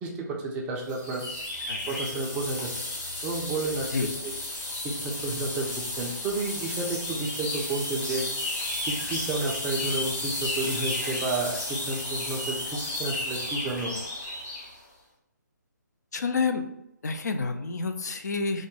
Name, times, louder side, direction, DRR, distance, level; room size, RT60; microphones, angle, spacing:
voice 1, 0.0-1.2 1.9-2.7 3.2-3.9 4.2-4.3 4.8-8.2 8.8-13.9, right 3 dB, 10° right, -1 dB, 0.3 m, -31 dB
sound 1, 0.9-14.7, left 2 dB, 35° left, 1.4 m, -33 dB
voice 2, 16.1-16.6 17.0-18.7, left 4 dB, 60° left, 7 dB, 0.4 m, -29 dB
3.6 x 2.1 x 3.7 m, 0.86 s
figure-of-eight pair, 140°, 10 cm